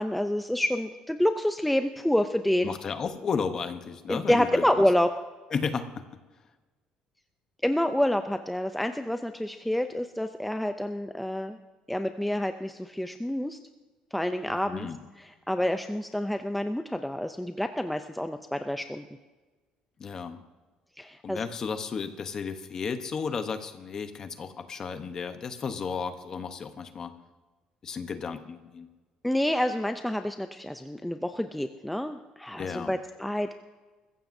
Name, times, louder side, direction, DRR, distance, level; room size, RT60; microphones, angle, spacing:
voice 1, 0.0-2.8 4.1-5.1 7.6-11.6 11.9-13.6 14.1-14.9 15.5-19.1 21.0-21.4 29.2-33.5, left 1 dB, ahead, 7 dB, 0.4 m, -28 dB
voice 2, 2.6-4.6 5.5-5.9 14.4-15.0 20.0-20.4 21.2-27.1 27.8-28.9 32.6-33.0, left 5 dB, 30° left, 9 dB, 0.8 m, -33 dB
22.5 x 15.0 x 2.6 m, 1.3 s
cardioid pair, 180°, 2 cm